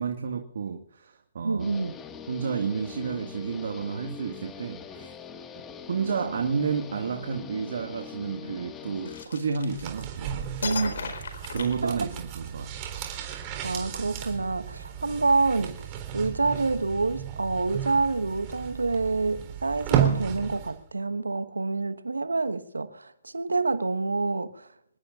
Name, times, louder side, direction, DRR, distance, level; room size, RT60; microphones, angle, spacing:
voice 1, 0.0-1.7 2.3-5.1 5.9-10.8 11.5-12.7, right 6 dB, 65° right, 1.9 m, -31 dB
voice 2, 1.4-1.9 10.6-11.1 11.8-12.0 13.6-15.9 16.1-24.7, right 3 dB, 85° right, 1.3 m, -27 dB
Guitar, 1.6-9.3, left 7 dB, 20° left, 1.9 m, -42 dB
sound 1, 9.1-10.2 10.6-12.5, left 5 dB, 65° left, 4.3 m, -36 dB
sound 2, 9.6-20.8 21.1-21.2, right 9 dB, 30° right, 3.9 m, -33 dB
28.0 x 19.5 x 2.6 m
figure-of-eight pair, 130°, 0 cm